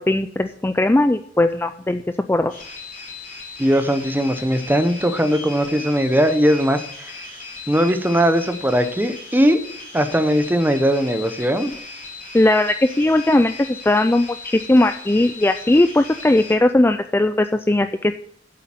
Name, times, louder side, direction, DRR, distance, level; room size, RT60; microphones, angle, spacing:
voice 1, 0.0-2.0 2.3-2.5 12.3-18.2, left 1 dB, 15° left, 9 dB, 0.4 m, -18 dB
sound 1, 2.5-16.6, left 4 dB, 45° left, 3.9 m, -37 dB
voice 2, 3.6-7.1 7.7-9.6 9.9-11.7, equal, 10° right, 9 dB, 0.8 m, -19 dB
8.5 x 7.8 x 7.6 m, 0.64 s
head